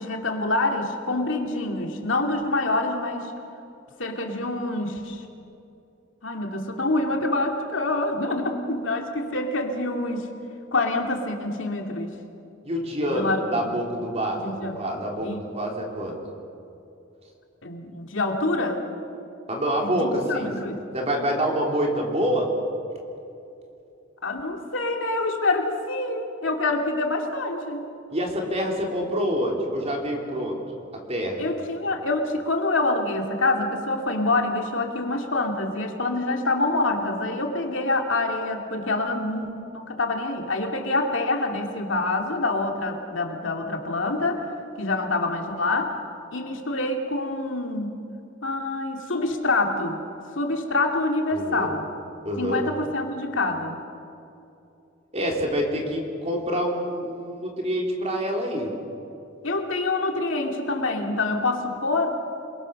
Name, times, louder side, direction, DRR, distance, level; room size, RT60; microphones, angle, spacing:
voice 1, 0.0-3.3 4.0-5.2 6.2-10.3 10.7-12.1 13.1-13.8 14.4-14.8 15.2-15.4 17.6-18.8 19.8-20.8 24.2-27.9 31.4-44.4 44.8-45.9 46.3-48.0 48.4-50.0 50.3-51.9 52.4-53.8 59.4-62.2, left 2 dB, 70° left, 3 dB, 2.6 m, -26 dB
voice 2, 12.6-16.2 19.5-20.5 20.9-22.5 28.1-30.6 30.9-31.4 51.3-51.7 52.2-52.6 55.1-58.7, equal, 35° right, 0 dB, 3.9 m, -26 dB
28.5 x 21.5 x 6.6 m, 2.7 s
head